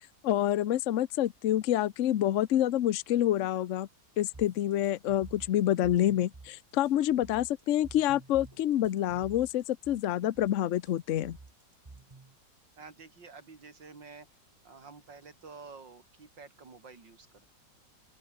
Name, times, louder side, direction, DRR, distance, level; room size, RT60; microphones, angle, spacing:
voice 1, 0.2-3.9 4.2-11.4, left 12 dB, 55° left, 0.9 m, -27 dB
sound 1, 4.3-12.3, right 3 dB, 20° right, 0.8 m, -51 dB
voice 2, 12.8-14.3 14.6-17.3, right 4 dB, 85° right, 4.1 m, -50 dB
open air
omnidirectional pair, 1.9 m